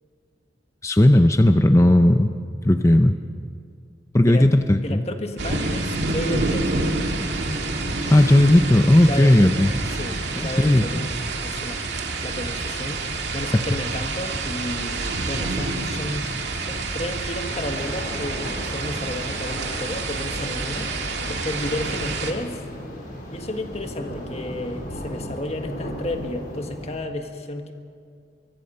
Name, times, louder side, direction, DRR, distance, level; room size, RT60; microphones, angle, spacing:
voice 1, 0.8-2.3 2.6-3.2 4.1-5.0 8.1-9.7 10.6-10.9, left 1 dB, 15° left, 7 dB, 0.6 m, -15 dB
voice 2, 4.2-4.5 4.8-6.8 9.1-9.5 9.9-11.1 11.4-11.8 12.2-13.0 13.3-16.3 16.6-20.9 21.3-22.6 23.3-27.7, left 1 dB, 35° left, 5 dB, 1.5 m, -32 dB
sound 1, 5.4-22.3, right 3 dB, 70° right, 2.2 m, -28 dB
sound 2, 7.1-27.0, equal, 55° left, 4.5 m, -38 dB
24.0 x 22.0 x 5.6 m, 2.2 s
head